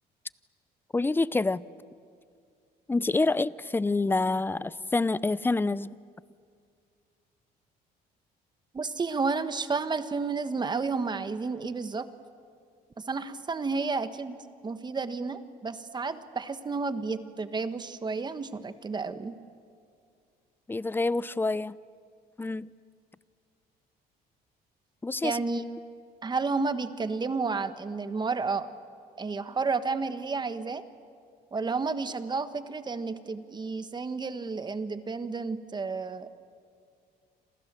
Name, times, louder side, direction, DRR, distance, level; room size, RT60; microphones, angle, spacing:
voice 1, 0.9-1.7 2.9-6.0 20.7-21.8 22.4-22.7 25.0-25.4, left 3 dB, 10° left, 0.6 m, -27 dB
voice 2, 8.7-12.1 13.0-14.4 14.6-19.4 25.2-25.6 26.2-28.7 29.2-30.8 31.5-36.3, right 4 dB, 25° right, 1.4 m, -31 dB
28.5 x 27.5 x 7.5 m
cardioid pair, 110°, 17 cm